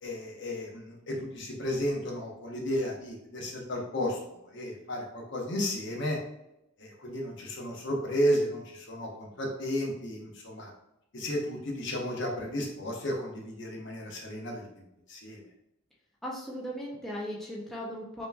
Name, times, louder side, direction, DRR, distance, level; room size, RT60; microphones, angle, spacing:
voice 1, 0.0-6.2 6.8-10.7 11.1-14.6 15.1-15.4, equal, 55° left, 0 dB, 0.9 m, -33 dB
voice 2, 16.2-18.3, equal, ahead, -5 dB, 0.6 m, -37 dB
5.5 x 3.0 x 2.3 m, 0.86 s
head